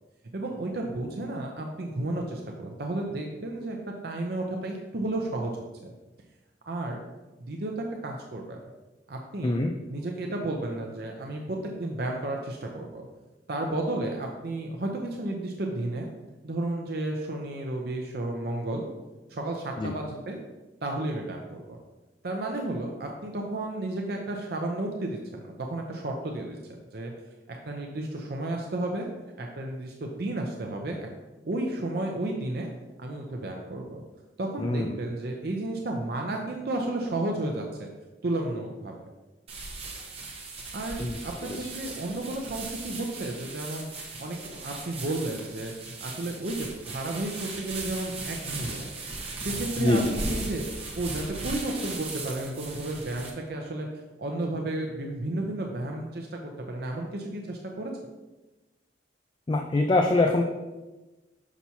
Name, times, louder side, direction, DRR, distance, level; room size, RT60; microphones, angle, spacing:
voice 1, 0.3-3.8 4.0-5.9 6.7-7.0 7.4-8.6 9.1-9.6 9.9-13.1 13.5-16.1 16.4-18.9 19.3-20.4 20.8-21.8 22.2-27.1 27.6-29.1 29.4-31.1 31.4-32.7 33.0-34.0 34.4-37.9 38.2-38.9 40.7-43.9 44.2-48.9 49.4-50.6 51.0-53.9 54.2-57.9, right 2 dB, 55° right, 1 dB, 0.6 m, -32 dB
voice 2, 9.4-9.7 19.8-19.9 34.6-34.9 41.0-41.2 41.5-41.7 49.8-50.2 59.5-60.4, left 2 dB, 25° left, 3 dB, 0.3 m, -24 dB
sound 1, 39.5-53.3, right 3 dB, 35° right, 1.0 m, -38 dB
6.0 x 5.6 x 2.8 m, 1.1 s
head